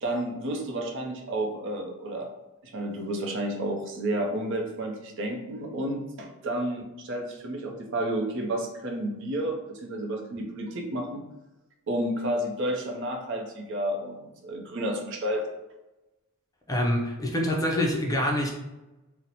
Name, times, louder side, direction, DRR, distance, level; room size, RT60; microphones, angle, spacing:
voice 1, 0.0-2.3 2.6-11.2 11.9-15.4, right 1 dB, 60° right, 2 dB, 0.6 m, -31 dB
voice 2, 16.7-18.5, left 1 dB, 15° left, -1 dB, 0.5 m, -25 dB
2.8 x 2.0 x 3.9 m, 0.99 s
head